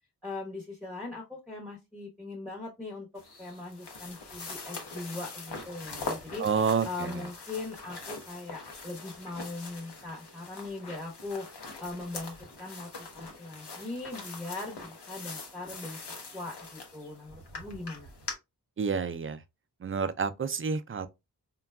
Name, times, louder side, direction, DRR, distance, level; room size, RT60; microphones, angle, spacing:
voice 1, 0.2-3.1 3.4-6.4 6.8-11.5 11.8-16.0 16.3-18.1, left 2 dB, ahead, 0.9 m, -40 dB
sound 1, 3.2-18.3, left 3 dB, 80° left, 0.9 m, -43 dB
voice 2, 6.4-7.2 18.8-19.4 19.8-21.1, right 5 dB, 35° right, 0.4 m, -29 dB
3.8 x 2.2 x 2.2 m
cardioid pair, 40°, 40 cm